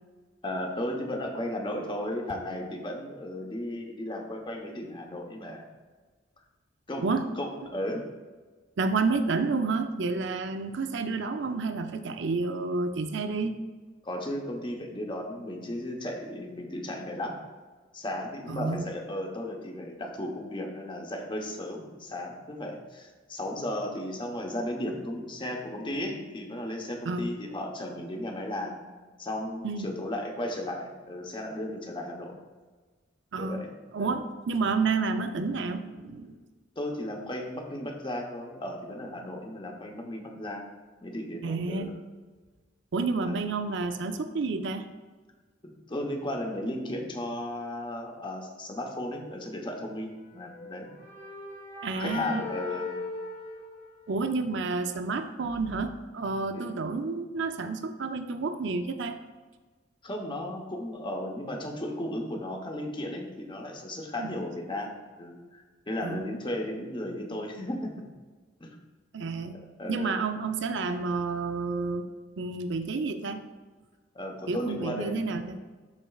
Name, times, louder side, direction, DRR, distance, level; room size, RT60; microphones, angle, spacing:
voice 1, 0.4-5.6 6.9-7.0 7.4-8.1 14.0-17.4 17.9-28.8 29.2-32.4 33.4-33.7 34.0-34.1 36.8-40.7 41.0-41.9 43.2-43.4 45.9-50.9 52.0-52.9 56.5-56.7 60.0-64.9 65.2-68.0 68.6-68.8 69.8-70.2 74.1-75.4, left 1 dB, 25° left, 1 dB, 0.9 m, -35 dB
voice 2, 8.8-13.5 18.5-18.9 27.1-27.3 29.6-30.0 33.3-36.4 41.4-42.0 42.9-44.9 51.8-52.5 54.1-59.2 64.2-64.4 66.0-66.4 69.1-69.6 69.9-73.5 74.5-75.6, right 4 dB, 70° right, 8 dB, 0.6 m, -30 dB
sound 1, 50.5-54.4, left 3 dB, 60° left, 1.5 m, -38 dB
12.0 x 4.4 x 2.4 m, 1.4 s
head